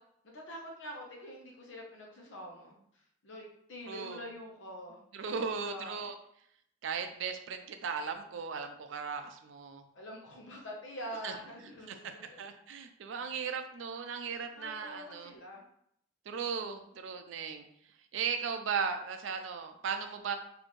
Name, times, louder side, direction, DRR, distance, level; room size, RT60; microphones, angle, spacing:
voice 1, 0.2-5.0 5.4-6.1 9.9-12.4 14.6-15.6, equal, 75° left, -1 dB, 1.0 m, -46 dB
voice 2, 3.9-4.2 5.1-6.1 6.8-9.8 11.2-11.3 11.9-12.0 12.4-15.3 16.3-17.6 18.1-20.4, right 6 dB, 75° right, 7 dB, 0.4 m, -37 dB
4.1 x 2.7 x 3.1 m, 0.71 s
head